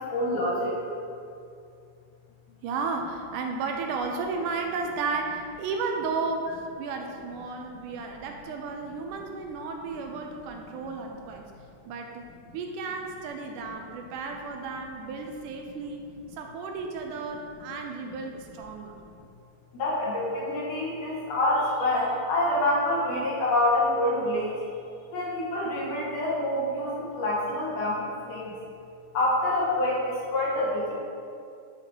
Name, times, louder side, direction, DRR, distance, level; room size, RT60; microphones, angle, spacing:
voice 1, 0.1-0.7 19.7-24.5 25.1-28.0 28.3-28.5 29.1-30.9, left 1 dB, 70° left, -6 dB, 2.9 m, -26 dB
voice 2, 2.6-11.4 11.9-18.9, right 4 dB, 80° right, 3 dB, 2.0 m, -33 dB
8.2 x 5.8 x 2.9 m, 2.5 s
omnidirectional pair, 3.7 m